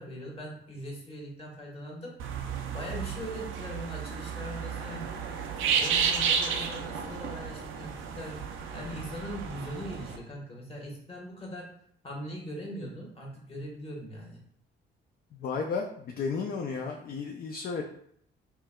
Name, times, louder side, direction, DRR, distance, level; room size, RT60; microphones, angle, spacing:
voice 1, 0.0-2.1 2.7-5.1 5.7-11.7 12.0-14.4, equal, 30° left, -2 dB, 1.2 m, -40 dB
sound 1, 2.2-10.2, right 7 dB, 80° right, 0.5 m, -32 dB
voice 2, 15.3-17.8, left 5 dB, 50° left, 3 dB, 0.4 m, -33 dB
4.4 x 2.3 x 2.2 m, 0.67 s
cardioid pair, 90°, 20 cm